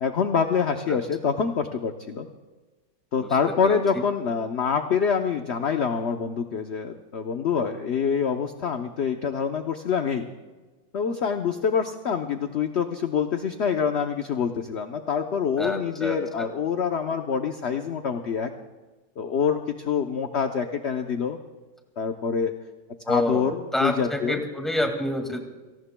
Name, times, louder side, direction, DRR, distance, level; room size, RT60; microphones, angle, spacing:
voice 1, 0.0-2.3 3.1-10.3 10.9-18.5 19.2-21.4 22.0-22.5 23.1-24.4, left 6 dB, 55° left, 6 dB, 0.8 m, -26 dB
voice 2, 3.6-4.0 15.6-16.5 23.0-25.4, left 1 dB, ahead, 3 dB, 1.8 m, -28 dB
29.0 x 18.5 x 2.2 m, 1.2 s
omnidirectional pair, 2.0 m